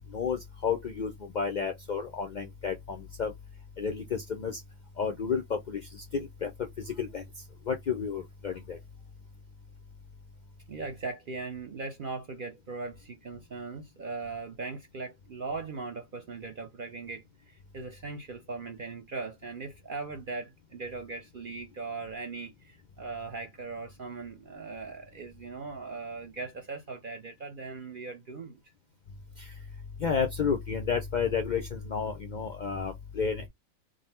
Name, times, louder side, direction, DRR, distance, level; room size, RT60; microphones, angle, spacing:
voice 1, 0.1-3.3 3.8-4.6 5.0-6.5 6.8-7.2 7.7-8.8 29.4-29.5 30.0-33.5, left 6 dB, 65° left, 0.4 m, -31 dB
voice 2, 10.7-28.6, right 4 dB, 55° right, 0.6 m, -39 dB
3.8 x 2.1 x 4.1 m
omnidirectional pair, 1.4 m